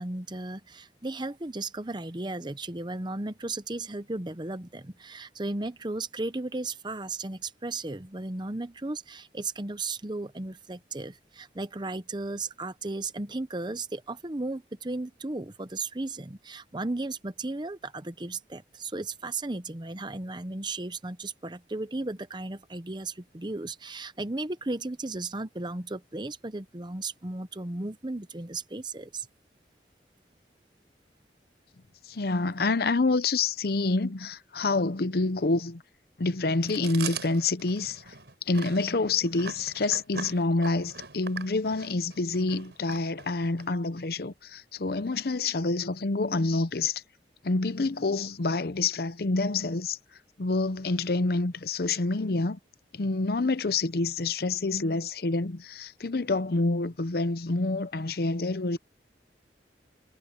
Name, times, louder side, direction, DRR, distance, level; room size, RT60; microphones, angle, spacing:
voice 1, 0.0-29.3, right 2 dB, 25° right, 0.9 m, -35 dB
voice 2, 32.1-35.8 36.2-38.1 38.5-47.0 47.4-50.0 50.4-52.6 52.9-58.8, left 3 dB, 60° left, 0.7 m, -27 dB
Chewing mastication, 36.6-43.7, right 5 dB, 75° right, 5.4 m, -41 dB
head